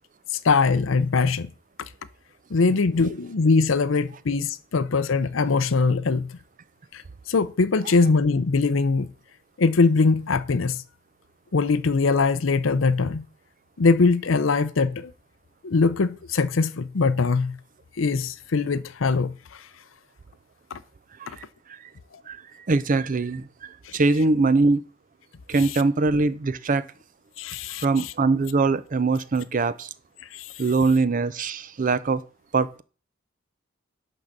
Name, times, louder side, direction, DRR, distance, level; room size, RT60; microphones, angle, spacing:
voice 1, 0.4-1.5 2.5-6.3 6.9-7.0 7.3-9.1 9.6-10.8 11.5-13.2 13.8-15.1 15.6-17.6 18.0-19.3 20.7-20.8 23.9-24.0 25.6-25.7 27.4-28.1 30.3-30.4, left 4 dB, 85° left, 0.6 m, -22 dB
voice 2, 22.7-24.8 25.5-26.8 27.8-29.9 30.6-32.2 32.5-32.8, right 3 dB, 45° right, 0.5 m, -22 dB
11.0 x 4.0 x 7.3 m
head